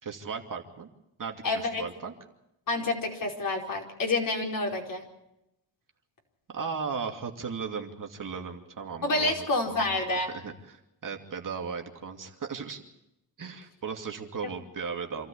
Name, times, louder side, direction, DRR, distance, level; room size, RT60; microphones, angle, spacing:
voice 1, 0.0-0.9 1.2-2.1 6.5-9.8 10.3-12.8 13.4-15.3, right 5 dB, 45° right, 3 dB, 2.6 m, -36 dB
voice 2, 1.4-1.8 2.7-5.0 9.0-10.3, left 2 dB, 45° left, 1 dB, 4.8 m, -28 dB
27.0 x 13.5 x 8.7 m, 0.86 s
cardioid pair, 75°, 45 cm